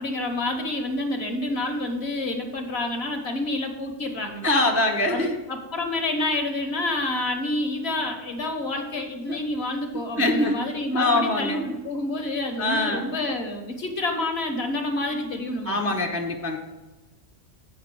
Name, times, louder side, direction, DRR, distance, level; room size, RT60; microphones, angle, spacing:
voice 1, 0.0-4.4 5.1-15.8, left 2 dB, 55° left, 4 dB, 1.3 m, -28 dB
voice 2, 4.4-5.4 9.3-9.4 10.2-10.6 10.9-11.6 12.6-13.1 14.5-14.7 15.7-16.6, left 2 dB, 15° right, 0 dB, 0.6 m, -23 dB
7.6 x 5.2 x 6.1 m, 1.1 s
omnidirectional pair, 1.4 m